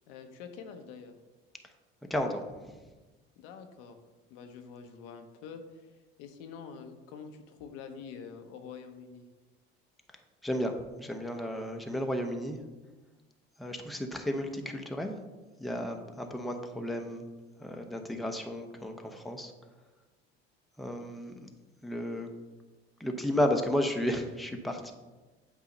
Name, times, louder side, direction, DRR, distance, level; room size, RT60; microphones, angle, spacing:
voice 1, 0.1-1.2 3.4-4.0 4.3-5.9 6.2-9.2, left 6 dB, 75° left, 6 dB, 0.8 m, -46 dB
voice 2, 2.1-2.4 10.4-12.6 13.6-15.2 15.6-17.3 17.6-19.5 20.8-21.5 21.8-22.3 23.0-24.9, equal, ahead, 3 dB, 0.7 m, -33 dB
8.0 x 2.8 x 5.2 m, 1.2 s
hypercardioid pair, 65°, 30 cm